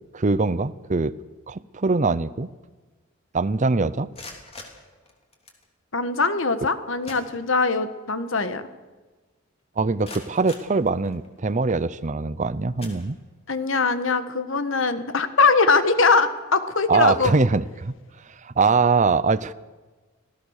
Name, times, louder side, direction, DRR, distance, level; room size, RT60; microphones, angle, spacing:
voice 1, 0.1-1.1 1.5-2.5 3.3-4.1 9.8-13.2 16.9-17.9 18.4-19.5, right 4 dB, 35° right, 17 dB, 0.6 m, -22 dB
sound 1, 3.9-5.7 6.6-6.7 7.0-7.9 8.3-8.4 8.9-9.0 9.6-11.5 12.1-12.3 12.8-13.6, left 2 dB, 30° left, 3.2 m, -44 dB
voice 2, 5.9-8.6 13.5-17.3, left 4 dB, 65° left, 11 dB, 1.5 m, -21 dB
26.0 x 16.5 x 6.6 m, 1.3 s
head